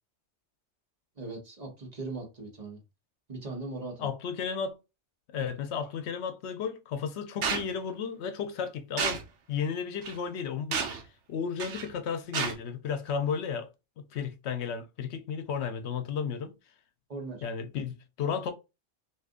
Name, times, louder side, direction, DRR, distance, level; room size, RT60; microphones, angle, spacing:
voice 1, 1.2-2.8 3.3-4.1 17.1-17.4, right 3 dB, 35° right, 1.1 m, -39 dB
voice 2, 4.0-4.8 5.3-10.8 11.3-13.7 14.0-16.5 17.4-18.5, left 6 dB, 70° left, 0.8 m, -33 dB
sound 1, 7.4-7.7 9.0-9.2 10.0-10.2 10.7-11.0 11.6-11.9 12.3-12.5, right 5 dB, 90° right, 1.1 m, -30 dB
2.7 x 2.5 x 3.6 m
omnidirectional pair, 1.2 m